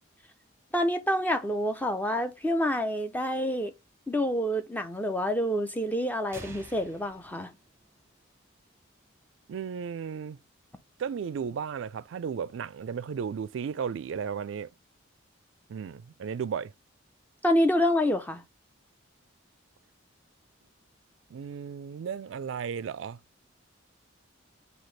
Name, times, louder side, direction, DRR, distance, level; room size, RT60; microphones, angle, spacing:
voice 1, 0.7-3.7 4.1-7.5 17.4-18.4, equal, 10° left, 0.5 m, -27 dB
sound 1, 6.3-8.2, right 2 dB, 10° right, 0.9 m, -48 dB
voice 2, 9.5-10.4 11.0-14.7 15.7-16.7 21.3-23.2, right 7 dB, 65° right, 0.3 m, -34 dB
5.8 x 2.8 x 3.1 m
head